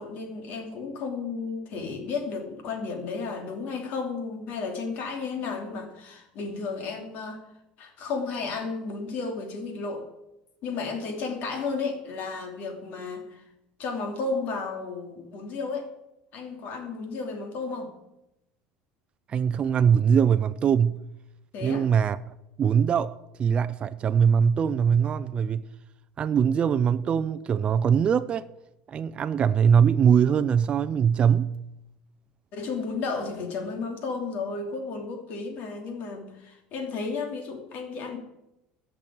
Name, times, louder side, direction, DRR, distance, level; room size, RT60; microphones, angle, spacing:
voice 1, 0.0-7.4 7.8-10.0 10.6-13.4 13.8-15.9 16.3-17.9 21.5-21.9 32.5-38.2, left 4 dB, 55° left, 3.0 m, -33 dB
voice 2, 19.3-21.0 21.6-22.2 22.6-25.6 26.2-28.5 28.9-31.6, right 7 dB, 30° right, 0.5 m, -22 dB
13.5 x 6.1 x 8.7 m
supercardioid pair, 125°, 3 cm